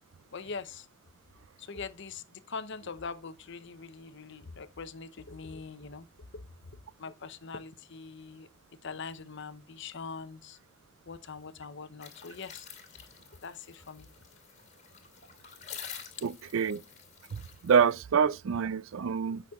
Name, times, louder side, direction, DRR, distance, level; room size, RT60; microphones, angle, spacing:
voice 1, 0.3-0.9 1.6-6.1 6.7-8.5 8.8-10.6 11.1-13.0 13.4-14.1, left 5 dB, 60° left, 0.8 m, -42 dB
sound 1, 12.0-17.9, left 7 dB, 35° left, 2.9 m, -48 dB
voice 2, 16.2-16.8 17.3-19.4, right 6 dB, 70° right, 0.4 m, -27 dB
9.1 x 6.1 x 3.6 m
head